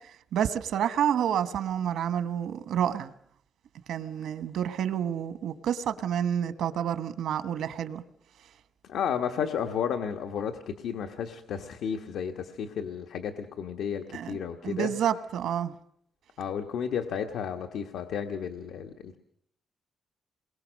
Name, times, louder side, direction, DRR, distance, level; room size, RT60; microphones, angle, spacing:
voice 1, 0.3-3.1 3.9-8.0 14.1-14.4 14.6-15.7, right 9 dB, 80° right, 12 dB, 1.2 m, -29 dB
voice 2, 8.8-14.9 16.4-19.2, left 7 dB, 85° left, 6 dB, 1.4 m, -32 dB
28.0 x 22.0 x 6.4 m, 0.69 s
wide cardioid pair, 165°, 0 cm